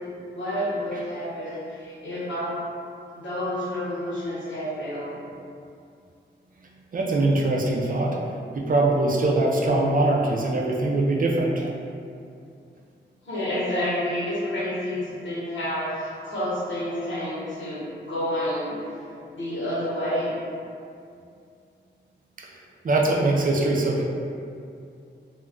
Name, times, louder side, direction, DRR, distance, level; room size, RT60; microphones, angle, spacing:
voice 1, 0.3-2.6 3.1-5.2 13.2-17.8 18.1-18.8 19.3-20.3, left 1 dB, 85° left, -8 dB, 0.9 m, -29 dB
voice 2, 6.9-8.2 8.5-11.7 22.4-22.5 22.8-24.0, right 2 dB, 50° right, -2 dB, 0.4 m, -22 dB
2.2 x 2.2 x 3.6 m, 2.4 s
cardioid pair, 70°, 19 cm